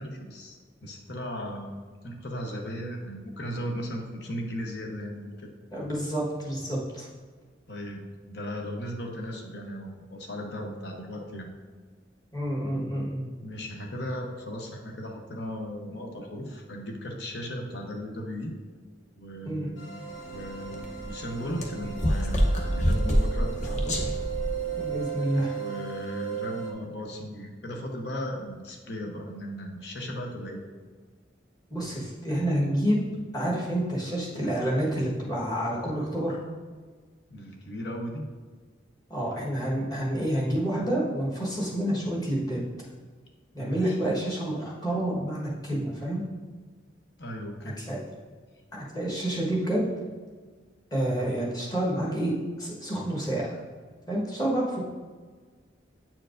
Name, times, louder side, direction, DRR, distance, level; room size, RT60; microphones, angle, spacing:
voice 1, 0.0-5.5 7.7-11.5 13.4-18.5 19.2-24.0 25.5-30.6 37.3-38.3 43.6-44.0 47.2-47.8, equal, 60° left, 2 dB, 0.9 m, -36 dB
voice 2, 5.7-7.1 12.3-13.3 19.4-19.7 24.8-25.6 31.7-33.0 33.3-36.4 39.1-42.6 43.5-46.2 47.8-48.0 48.9-49.9 50.9-53.6 54.1-54.9, right 1 dB, 20° left, -5 dB, 1.3 m, -28 dB
sound 1, 19.8-26.7, right 9 dB, 85° left, 1.0 m, -36 dB
sound 2, 20.1-25.1, equal, 40° left, 0.7 m, -28 dB
8.7 x 4.5 x 2.5 m, 1.5 s
head